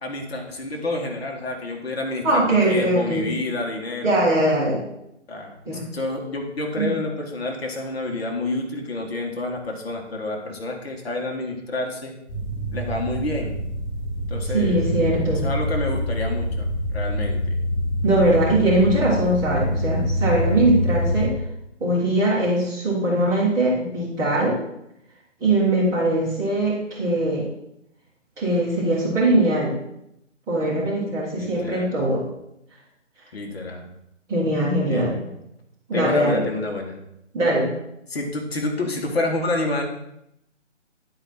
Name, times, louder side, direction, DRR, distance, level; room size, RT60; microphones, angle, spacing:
voice 1, 0.0-4.3 5.3-5.6 5.9-12.1 12.7-13.5 14.3-14.8 15.4-16.7 16.9-17.6 31.4-32.0 33.3-33.9 34.8-35.3 35.9-37.0 38.1-39.9, left 2 dB, 55° left, 1 dB, 1.6 m, -28 dB
voice 2, 2.2-3.3 4.0-4.8 5.6-5.8 6.8-6.9 14.4-15.5 18.0-21.3 21.8-24.6 25.4-27.5 28.4-29.7 30.5-32.2 34.3-35.2 35.9-36.4 37.3-37.7, right 1 dB, 10° right, -8 dB, 1.6 m, -21 dB
sound 1, 12.3-21.3, equal, 25° left, 1.5 m, -25 dB
10.0 x 4.9 x 4.3 m, 0.81 s
figure-of-eight pair, 150°, 37 cm